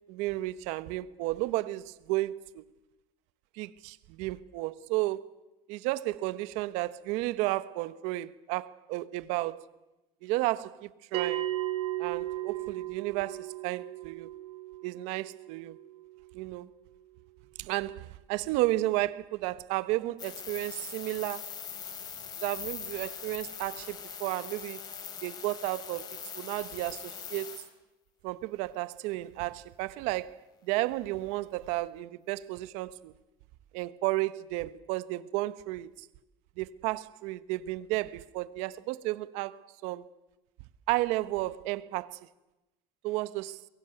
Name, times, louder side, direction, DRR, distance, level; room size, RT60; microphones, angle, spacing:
voice 1, 0.1-2.6 3.6-5.2 5.7-9.6 10.2-11.5 12.0-14.3 14.8-15.8 16.3-16.7 17.6-21.5 22.4-24.8 25.2-27.6 28.2-30.4 30.6-33.1 33.7-35.9 36.6-40.1 40.9-42.2 43.0-43.6, right 18 dB, 70° right, 1.1 m, -33 dB
Bell, 11.1-16.2, right 15 dB, 55° right, 3.1 m, -35 dB
sound 1, 20.2-27.7, left 7 dB, 35° left, 3.6 m, -42 dB
22.5 x 22.0 x 9.1 m
cardioid pair, 150°, 12 cm